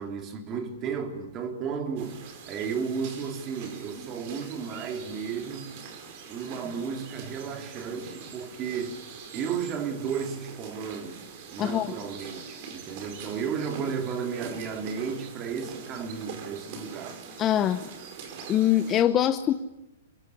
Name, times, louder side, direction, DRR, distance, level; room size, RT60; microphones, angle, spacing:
voice 1, 0.0-2.2 2.5-5.7 6.3-9.0 9.3-17.2, right 6 dB, 30° right, 3.4 m, -33 dB
sound 1, 2.0-19.0, right 5 dB, 45° right, 5.2 m, -43 dB
voice 2, 11.6-11.9 17.4-17.8 18.5-19.5, left 11 dB, 25° left, 0.9 m, -23 dB
24.0 x 21.5 x 9.9 m
hypercardioid pair, 150°, 0 cm